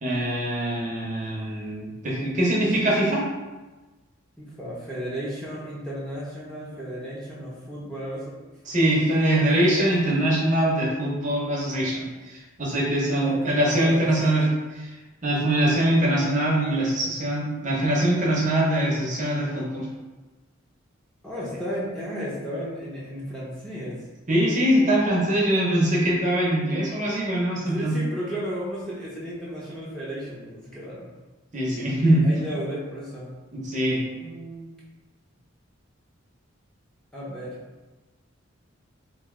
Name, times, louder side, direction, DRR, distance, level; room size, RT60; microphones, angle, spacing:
voice 1, 0.0-3.2 8.7-14.4 14.8-14.9 15.2-19.9 24.3-27.9 31.5-32.4 33.5-34.0, right 1 dB, 35° right, -4 dB, 0.7 m, -23 dB
voice 2, 4.4-8.3 13.1-14.2 21.2-24.0 27.5-31.1 32.0-33.4 34.1-34.7 37.1-37.6, equal, 5° left, -8 dB, 0.6 m, -34 dB
3.1 x 2.6 x 3.6 m, 1.2 s
head